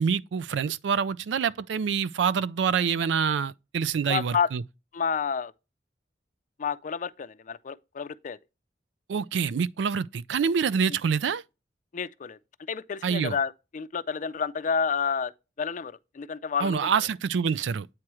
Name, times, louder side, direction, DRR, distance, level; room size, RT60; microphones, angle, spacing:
voice 1, 0.0-4.6 9.1-11.4 13.0-13.4 16.6-17.9, right 6 dB, 80° right, 0.4 m, -26 dB
voice 2, 4.1-4.5 4.9-5.5 6.6-8.4 11.9-12.4 12.7-15.3 15.6-16.9, left 6 dB, 45° left, 0.4 m, -30 dB
8.6 x 3.0 x 4.7 m
head